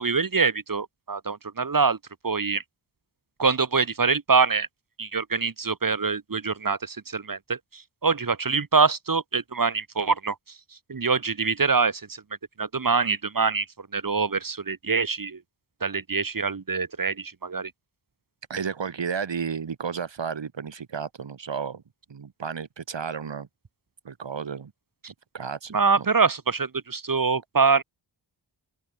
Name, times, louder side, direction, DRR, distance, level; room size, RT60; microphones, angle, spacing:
voice 1, 0.0-2.0 2.2-2.6 3.4-4.7 5.0-10.3 10.9-12.2 12.6-13.7 13.9-15.4 15.8-17.7 25.0-25.1 25.7-27.8, right 4 dB, 45° right, 3.2 m, -24 dB
voice 2, 18.5-21.8 22.1-23.5 24.0-24.7 25.3-26.1, right 6 dB, 75° right, 6.7 m, -32 dB
open air
wide cardioid pair, 75°, 44 cm